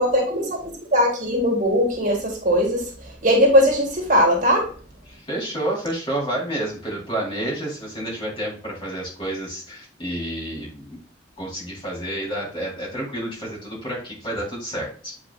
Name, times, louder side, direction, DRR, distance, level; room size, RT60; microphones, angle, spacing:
voice 1, 0.0-2.8 3.2-4.7, equal, 45° right, 0 dB, 2.0 m, -19 dB
voice 2, 5.1-11.0 11.4-15.1, right 1 dB, 30° left, -5 dB, 3.5 m, -29 dB
8.8 x 4.9 x 2.4 m, 0.41 s
head